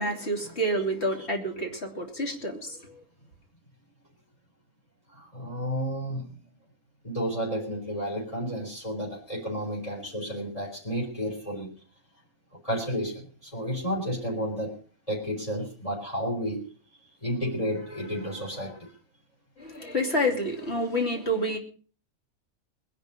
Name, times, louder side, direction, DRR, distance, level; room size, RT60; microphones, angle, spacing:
voice 1, 0.0-3.0 19.6-21.6, equal, 45° left, 3.2 m, -28 dB
voice 2, 5.1-6.4 7.0-11.7 12.6-14.7 15.1-16.7 17.2-18.9, equal, 25° left, 4.3 m, -31 dB
21.0 x 10.5 x 5.1 m
omnidirectional pair, 1.5 m